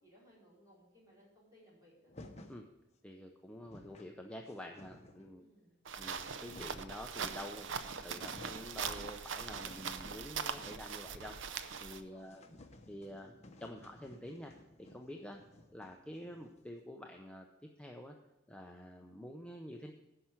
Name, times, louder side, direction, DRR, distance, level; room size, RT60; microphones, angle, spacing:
voice 1, 0.0-2.1 5.4-5.8 11.9-12.6, equal, 20° right, -7 dB, 4.6 m, -63 dB
sound 1, 2.1-2.6 3.3-3.4 3.5-4.1 4.5-5.3 6.0-7.0 7.7-7.8 8.1-8.7 9.1-11.1 11.3-11.4 11.7-11.8 12.2-16.7, left 1 dB, 35° left, 0.9 m, -56 dB
voice 2, 3.0-5.4 6.0-7.7 7.9-11.4 11.8-12.4 12.9-14.5 14.8-15.4 15.7-17.5 17.8-18.1 18.5-19.9, left 1 dB, 5° left, 2 dB, 0.6 m, -48 dB
sound 2, 5.9-12.0, right 6 dB, 75° right, 0.6 m, -41 dB
10.0 x 5.7 x 7.5 m, 0.96 s
head